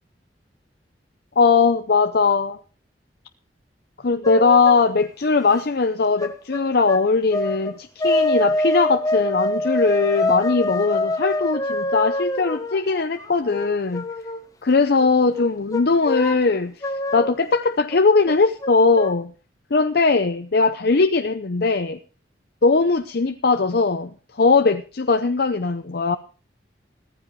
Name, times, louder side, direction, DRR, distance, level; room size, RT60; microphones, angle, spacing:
voice 1, 1.4-2.6 4.0-14.1 14.6-16.8 17.1-19.3 19.7-22.0 22.6-26.2, left 4 dB, 60° left, 0.7 m, -19 dB
sound 1, 4.2-4.9 6.2-7.7 8.0-14.4 15.0-16.5 16.8-17.3 17.9-18.0 18.3-19.1, left 1 dB, 20° left, 1.0 m, -25 dB
15.5 x 14.5 x 3.2 m
head